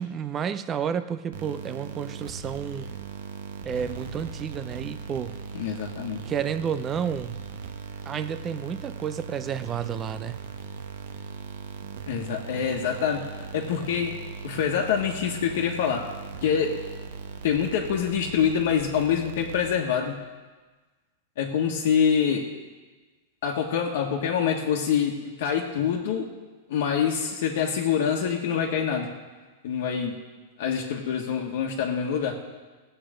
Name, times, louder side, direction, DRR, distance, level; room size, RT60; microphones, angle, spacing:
voice 1, 0.0-2.9 3.6-5.4 6.3-7.4 8.1-10.4, right 8 dB, 20° right, 12 dB, 0.5 m, -31 dB
sound 1, 1.3-20.1, right 5 dB, 60° right, 1.1 m, -39 dB
voice 2, 5.5-6.2 12.1-13.2 13.5-14.1 14.4-16.0 16.4-16.7 17.4-20.2 21.4-22.4 23.4-25.1 25.4-26.3 26.7-29.1 29.6-30.1 30.6-32.3, left 7 dB, 60° left, 0 dB, 1.4 m, -25 dB
17.5 x 7.9 x 5.0 m, 1.3 s
supercardioid pair, 165°, 0 cm